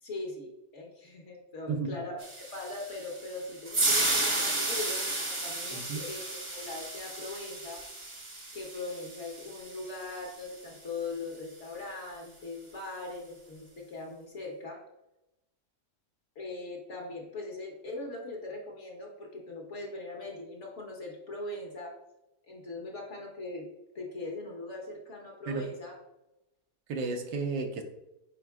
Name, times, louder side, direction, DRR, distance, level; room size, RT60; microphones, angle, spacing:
voice 1, 0.0-7.8 8.5-14.8 16.3-21.9 22.4-23.7 23.9-26.0, left 2 dB, 45° left, 0 dB, 1.3 m, -40 dB
voice 2, 1.7-2.0 5.7-6.0 25.5-25.6 26.9-27.8, right 4 dB, 90° right, 5 dB, 1.5 m, -33 dB
sound 1, 2.2-10.5, right 2 dB, 25° right, 0.6 m, -33 dB
9.2 x 4.4 x 2.4 m, 0.92 s
omnidirectional pair, 1.8 m